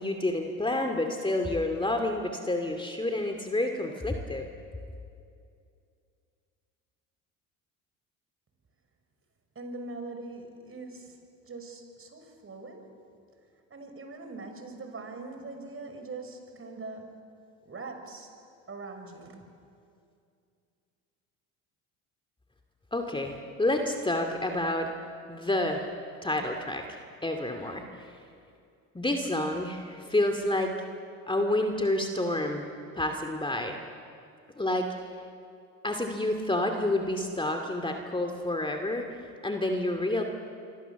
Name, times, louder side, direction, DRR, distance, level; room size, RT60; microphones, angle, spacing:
voice 1, 0.0-4.5 22.9-24.9 25.3-25.9 26.2-28.1 28.9-30.7 31.3-32.7 32.9-33.8 34.6-34.9 35.8-39.0 39.4-40.2, left 1 dB, 10° left, 4 dB, 2.5 m, -29 dB
voice 2, 9.6-11.2 11.4-12.9 13.7-17.2 17.6-18.3 18.7-19.5, right 3 dB, 30° right, 5 dB, 5.6 m, -42 dB
27.0 x 25.0 x 7.1 m, 2.4 s
hypercardioid pair, 75°, 41 cm